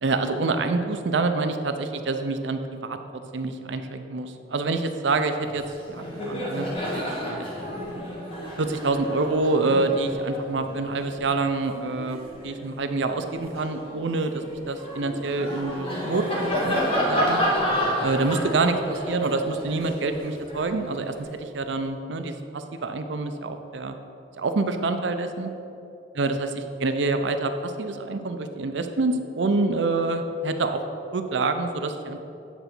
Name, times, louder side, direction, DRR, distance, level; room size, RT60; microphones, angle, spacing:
voice 1, 0.0-6.7 7.3-7.5 8.6-12.2 12.4-17.4 18.0-23.9 24.4-25.5 26.2-26.5 26.8-30.8 31.1-32.2, right 3 dB, 75° right, 7 dB, 0.6 m, -26 dB
Laughter, 5.4-5.6 5.9-12.6 13.1-21.3, equal, 30° left, 1.5 m, -30 dB
9.1 x 4.0 x 6.0 m, 2.8 s
head